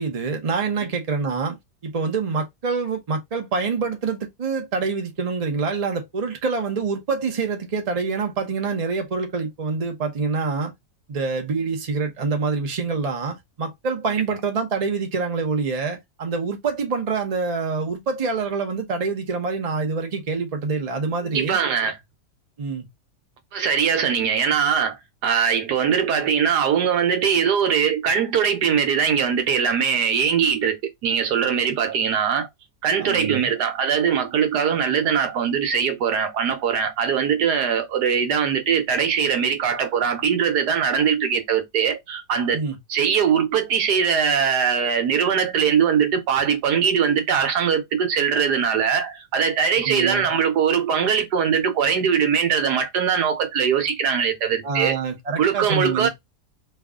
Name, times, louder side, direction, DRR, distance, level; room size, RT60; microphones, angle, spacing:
voice 1, 0.0-1.6 1.8-10.7 11.1-21.6 22.6-22.9 33.0-33.5 42.5-42.8 49.8-50.3 54.6-56.1, right 4 dB, 35° right, 0.7 m, -26 dB
voice 2, 21.3-22.0 23.5-32.5 32.8-42.6 42.9-55.0 55.4-56.1, right 7 dB, 80° right, 1.4 m, -21 dB
3.3 x 2.4 x 3.6 m
omnidirectional pair, 1.7 m